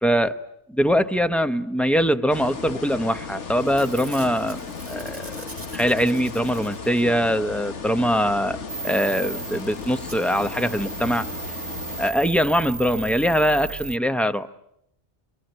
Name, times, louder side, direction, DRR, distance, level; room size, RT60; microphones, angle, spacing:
voice 1, 0.0-0.4 0.7-5.3 5.7-8.6 8.8-11.3 12.0-14.5, equal, ahead, 9 dB, 0.8 m, -22 dB
sound 1, 2.3-12.1, left 5 dB, 90° left, 1.6 m, -35 dB
Packing tape duct tape / Tearing, 3.1-3.3 3.6-7.2 9.1-9.2 9.4-9.5 10.1-10.2 10.8-10.9 11.1-11.2, right 2 dB, 30° right, 1.9 m, -43 dB
sound 2, 8.7-14.0, right 5 dB, 50° right, 1.3 m, -35 dB
27.0 x 25.0 x 8.0 m, 0.79 s
omnidirectional pair, 1.2 m